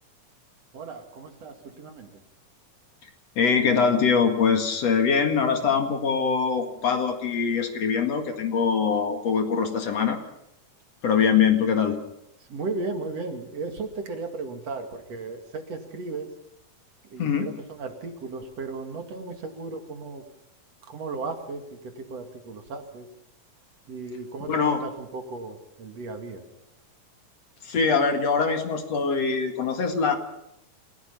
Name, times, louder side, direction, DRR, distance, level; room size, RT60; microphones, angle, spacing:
voice 1, 0.7-2.1 12.5-16.3 17.1-20.2 20.9-23.1 23.9-26.4, right 3 dB, 55° right, 5 dB, 3.2 m, -35 dB
voice 2, 3.4-10.2 11.0-12.0 17.2-17.5 24.5-24.8 27.6-30.2, left 6 dB, 60° left, 5 dB, 3.0 m, -23 dB
28.5 x 16.5 x 5.8 m, 0.83 s
omnidirectional pair, 3.5 m